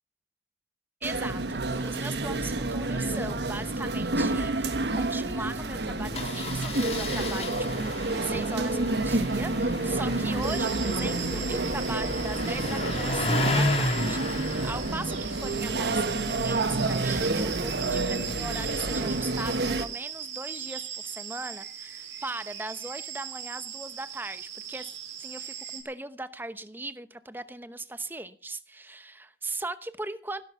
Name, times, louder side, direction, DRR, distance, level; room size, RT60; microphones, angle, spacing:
voice 1, 1.0-30.4, right 2 dB, 10° right, 0.9 m, -39 dB
sound 1, 1.0-19.9, right 2 dB, 65° right, 1.4 m, -29 dB
Engine starting, 4.3-4.5 4.7-4.8 5.1-5.2 6.1-17.2, left 2 dB, 35° left, 2.4 m, -33 dB
sound 2, 10.4-25.8, right 8 dB, 85° right, 3.7 m, -39 dB
16.5 x 11.0 x 5.7 m
head